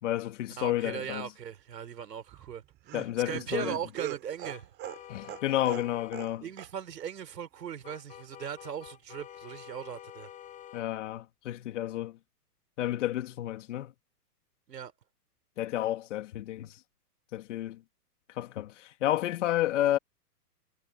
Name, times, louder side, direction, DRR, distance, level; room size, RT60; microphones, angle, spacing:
voice 1, 0.0-1.3 2.9-3.7 5.1-6.4 10.7-12.2 12.8-13.9 15.6-16.7 17.3-17.8 18.4-20.0, left 13 dB, 50° left, 3.2 m, -31 dB
voice 2, 0.6-2.6 3.3-4.7 6.4-10.3 14.7-14.9, right 8 dB, 80° right, 4.3 m, -38 dB
Laughter, 2.3-6.3 6.6-6.7 7.0-7.1, right 16 dB, 20° right, 6.9 m, -41 dB
sound 1, 4.4-6.2 7.8-10.9, left 11 dB, 15° left, 4.4 m, -48 dB
hypercardioid pair, 160°, 48 cm